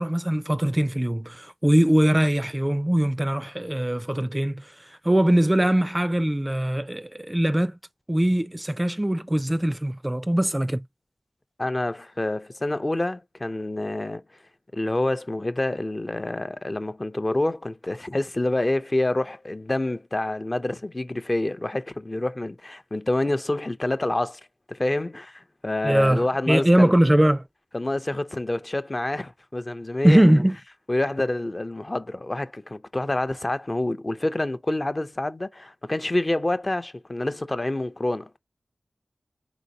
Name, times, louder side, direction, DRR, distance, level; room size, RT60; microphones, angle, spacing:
voice 1, 0.0-4.6 5.0-7.8 8.1-10.8 25.8-27.4 30.0-30.6, right 1 dB, 20° right, 0.4 m, -21 dB
voice 2, 11.6-14.2 14.7-24.4 24.7-26.9 27.7-30.2 30.9-38.4, left 2 dB, 35° left, 0.5 m, -27 dB
4.0 x 3.9 x 2.7 m
wide cardioid pair, 55°, 0 cm